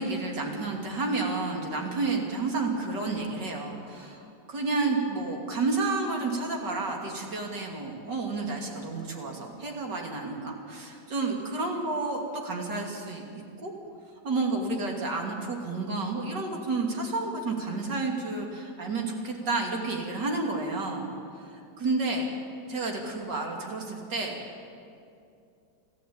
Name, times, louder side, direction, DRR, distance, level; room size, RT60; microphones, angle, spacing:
voice 1, 0.0-4.2 4.5-13.2 13.6-13.7 14.2-21.1 21.8-22.3 22.7-24.4, right 3 dB, 80° right, 0 dB, 3.5 m, -30 dB
26.5 x 14.5 x 8.8 m, 2.5 s
omnidirectional pair, 1.8 m